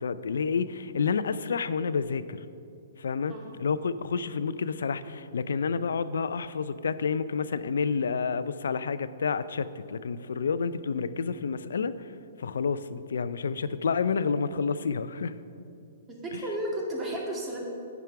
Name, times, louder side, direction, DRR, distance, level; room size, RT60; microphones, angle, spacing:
voice 1, 0.0-2.4 3.0-12.1 12.4-15.3, left 5 dB, 80° left, 14 dB, 0.4 m, -29 dB
voice 2, 16.1-17.6, right 1 dB, 20° right, -2 dB, 2.1 m, -33 dB
9.1 x 6.0 x 5.7 m, 2.7 s
hypercardioid pair, 130°, 0 cm